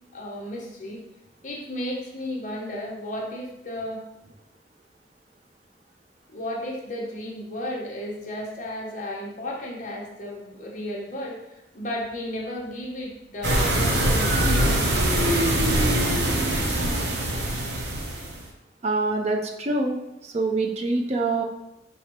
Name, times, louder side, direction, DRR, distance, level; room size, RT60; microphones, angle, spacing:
voice 1, 0.1-1.0 1.4-4.0 6.3-14.9, left 1 dB, 45° left, -2 dB, 1.0 m, -34 dB
sound 1, 13.4-18.4, right 1 dB, 75° right, 0.8 m, -23 dB
voice 2, 18.8-20.0 20.2-21.4, right 3 dB, 40° right, 2 dB, 0.4 m, -25 dB
5.3 x 3.3 x 2.9 m, 0.89 s
head